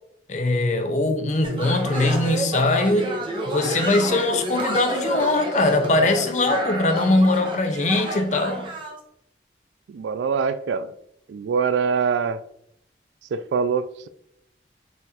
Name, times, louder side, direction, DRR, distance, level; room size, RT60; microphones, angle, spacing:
voice 1, 0.3-3.2 3.5-8.7, left 2 dB, 40° left, 0.5 m, -21 dB
sound 1, 1.4-9.0, right 1 dB, 30° right, 0.6 m, -30 dB
voice 2, 9.9-10.9 11.3-12.4 13.3-14.1, right 5 dB, 85° right, 0.3 m, -24 dB
4.0 x 2.5 x 4.1 m
head